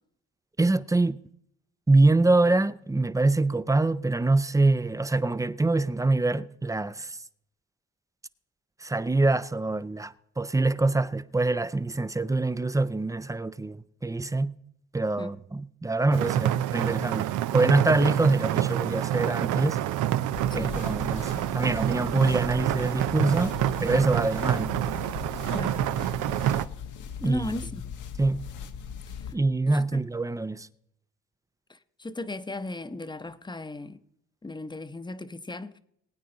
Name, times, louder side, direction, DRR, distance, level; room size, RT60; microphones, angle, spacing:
voice 1, 0.6-1.2 1.9-7.2 8.8-14.5 14.9-17.3 17.5-19.8 20.5-23.5 23.8-24.7 27.2-27.5 28.2-28.4 29.3-30.7, right 2 dB, 10° right, 0.5 m, -25 dB
sound 1, 16.1-26.6, right 12 dB, 85° right, 0.6 m, -27 dB
sound 2, 20.3-29.3, left 7 dB, 85° left, 1.1 m, -39 dB
voice 2, 25.4-25.8 27.2-27.9 29.2-29.3 29.7-30.0 31.7-34.0 34.4-35.8, left 2 dB, 15° left, 0.8 m, -36 dB
20.5 x 9.2 x 3.9 m
cardioid pair, 90°, 30 cm